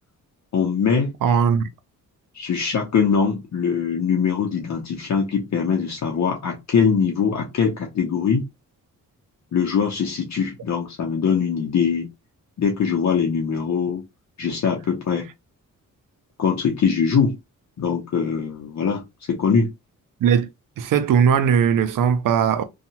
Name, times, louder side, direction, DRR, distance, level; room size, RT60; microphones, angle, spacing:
voice 1, 0.5-1.1 2.3-8.4 9.5-12.1 12.6-14.0 14.4-15.2 16.4-17.4 17.8-19.0 19.3-19.7, left 6 dB, 55° left, 0.7 m, -22 dB
voice 2, 1.2-1.7 20.2-20.5 20.8-22.6, right 7 dB, 70° right, 0.5 m, -19 dB
2.7 x 2.3 x 2.7 m
cardioid pair, 90°, 33 cm